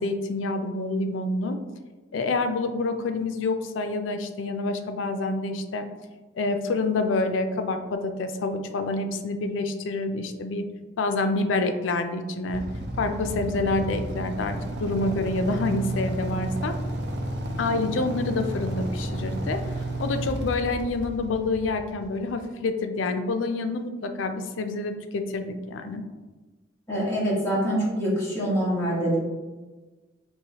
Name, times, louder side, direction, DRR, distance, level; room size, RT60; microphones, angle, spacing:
voice 1, 0.0-1.6 2.1-5.9 6.4-10.7 11.0-12.6 13.0-16.7 17.6-19.6 20.0-26.0, left 3 dB, 90° left, 7 dB, 0.4 m, -27 dB
Motorcycle / Idling, 12.5-22.4, right 1 dB, 60° right, 0.6 m, -32 dB
voice 2, 26.9-29.2, equal, 15° left, -8 dB, 1.3 m, -25 dB
4.6 x 3.0 x 2.8 m, 1.3 s
head